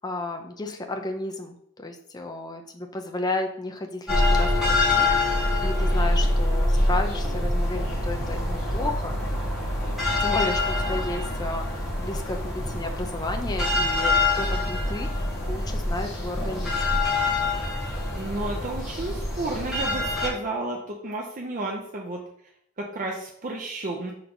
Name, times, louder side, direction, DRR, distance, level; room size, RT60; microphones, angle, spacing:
voice 1, 0.0-9.2 10.2-17.0, left 2 dB, 20° left, 3 dB, 0.6 m, -33 dB
sound 1, 4.1-20.3, left 2 dB, ahead, 1.7 m, -25 dB
voice 2, 18.1-22.2 22.8-24.1, right 2 dB, 35° right, 0 dB, 0.6 m, -32 dB
4.5 x 3.9 x 5.4 m, 0.72 s
head